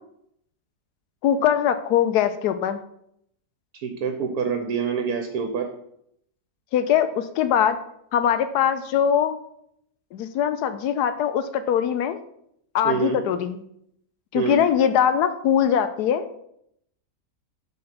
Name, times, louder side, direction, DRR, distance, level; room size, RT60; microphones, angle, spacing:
voice 1, 1.2-2.8 6.7-7.8 8.1-9.4 10.1-12.2 12.7-13.6 14.3-16.4, left 9 dB, 75° left, 10 dB, 1.1 m, -22 dB
voice 2, 3.7-5.7 12.8-13.2 14.3-14.6, right 6 dB, 70° right, 5 dB, 1.3 m, -26 dB
7.5 x 3.9 x 5.9 m, 0.73 s
omnidirectional pair, 1.7 m